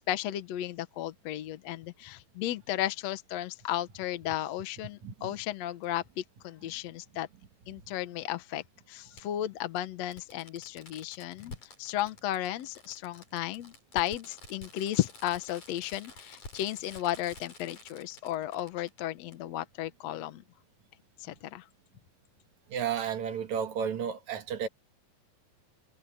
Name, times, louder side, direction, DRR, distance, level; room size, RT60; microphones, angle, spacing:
voice 1, 0.0-7.3 7.7-20.4 21.2-21.7, left 13 dB, 70° left, 1.7 m, -34 dB
Fireworks, 5.8-5.9 7.5-7.6 9.2-9.3 9.8-9.9 10.1-19.0 19.3-19.4, left 3 dB, 55° left, 9.2 m, -49 dB
voice 2, 22.7-24.7, right 7 dB, 55° right, 2.8 m, -32 dB
omnidirectional pair, 4.2 m